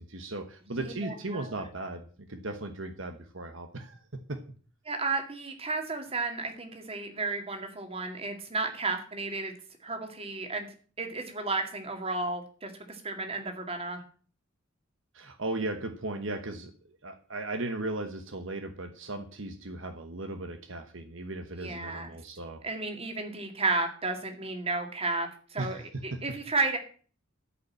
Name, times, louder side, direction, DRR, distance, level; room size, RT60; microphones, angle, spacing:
voice 1, 0.0-4.4 15.1-22.6 25.6-26.2, right 2 dB, 65° right, 7 dB, 1.2 m, -37 dB
voice 2, 0.7-1.5 4.9-9.5 9.8-10.7 11.0-14.0 21.5-22.1 22.6-26.8, right 3 dB, 30° right, 4 dB, 2.2 m, -33 dB
13.0 x 5.5 x 8.4 m, 0.43 s
head